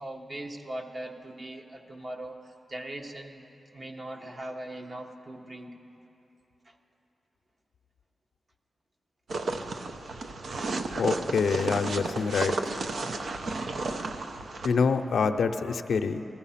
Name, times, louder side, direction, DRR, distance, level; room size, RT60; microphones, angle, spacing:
voice 1, 0.0-3.4 3.7-5.7 6.6-6.8, right 1 dB, 35° right, 3 dB, 1.2 m, -40 dB
sound 1, 9.3-14.7, right 3 dB, 70° right, 0.8 m, -32 dB
voice 2, 11.0-12.5 14.6-16.2, left 5 dB, 80° left, 7 dB, 0.6 m, -26 dB
15.5 x 14.5 x 5.7 m, 2.9 s
wide cardioid pair, 95°, 0 cm